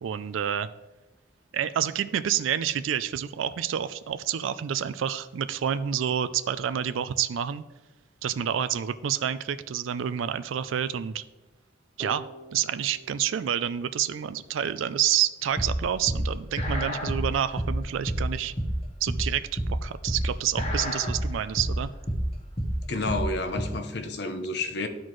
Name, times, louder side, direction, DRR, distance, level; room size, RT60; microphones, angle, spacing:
voice 1, 0.0-0.7 1.5-7.6 8.2-11.2 12.0-12.3 12.5-18.5 19.0-21.9, right 9 dB, 85° right, 14 dB, 0.4 m, -28 dB
sound 1, 12.0-14.8, right 2 dB, 10° right, 1.0 m, -47 dB
sound 2, 15.6-23.6, equal, 30° left, 1.3 m, -28 dB
voice 2, 22.9-24.9, left 2 dB, 60° left, 7 dB, 0.8 m, -30 dB
12.0 x 4.2 x 3.1 m, 1.1 s
head